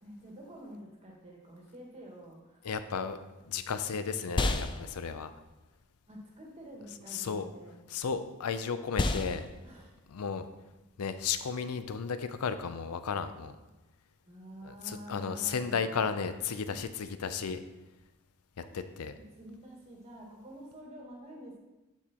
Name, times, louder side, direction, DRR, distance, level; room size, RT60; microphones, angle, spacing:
voice 1, 0.0-2.6 6.1-7.7 9.6-10.0 14.2-16.0 17.2-17.5 18.6-18.9 19.4-21.6, equal, 30° right, -2 dB, 1.7 m, -48 dB
voice 2, 2.6-3.2 3.5-5.3 7.1-7.5 7.9-9.5 10.1-10.5 11.0-13.5 14.6-17.6 18.6-19.2, left 6 dB, 80° left, 11 dB, 0.5 m, -34 dB
sound 1, 4.3-12.6, left 2 dB, 20° left, 0.3 m, -37 dB
10.5 x 4.8 x 2.9 m, 1.1 s
head